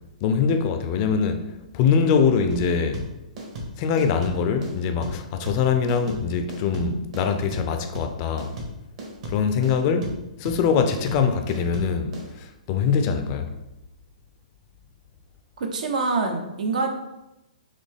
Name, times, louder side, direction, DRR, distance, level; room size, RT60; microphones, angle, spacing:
voice 1, 0.2-1.4 1.7-3.0 3.8-8.5 9.2-10.1 10.4-13.6, left 6 dB, 35° left, 0.4 m, -23 dB
sound 1, 2.5-12.3, right 1 dB, 50° right, 1.4 m, -35 dB
voice 2, 15.6-16.9, right 3 dB, 70° right, 0.8 m, -25 dB
4.1 x 3.2 x 3.5 m
hypercardioid pair, 145°, 4 cm